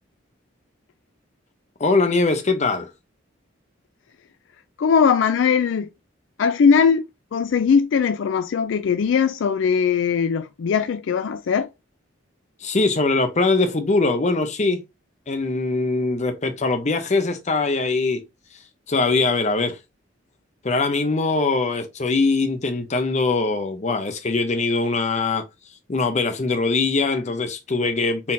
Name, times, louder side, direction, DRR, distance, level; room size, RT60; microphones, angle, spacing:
voice 1, 1.8-2.9 12.6-14.8 15.3-18.2 18.9-19.8 20.6-25.4 25.9-28.3, left 3 dB, 40° left, 0.7 m, -22 dB
voice 2, 4.8-5.9 6.4-7.0 7.3-11.7, left 6 dB, 70° left, 0.4 m, -19 dB
4.3 x 3.7 x 2.7 m
head